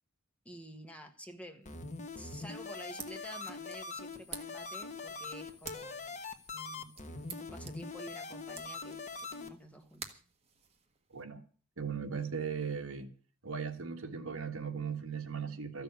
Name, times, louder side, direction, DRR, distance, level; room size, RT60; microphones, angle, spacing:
voice 1, 0.4-1.7 2.2-6.2 6.5-9.0 9.3-10.2, equal, 5° left, 5 dB, 1.5 m, -50 dB
sound 1, 1.6-9.5, left 4 dB, 35° left, 1.3 m, -43 dB
sound 2, 2.6-11.2, right 6 dB, 30° right, 1.6 m, -52 dB
voice 2, 11.1-11.4 11.8-13.1 13.4-15.8, right 6 dB, 65° right, 6 dB, 1.7 m, -38 dB
14.5 x 6.9 x 9.3 m, 0.41 s
head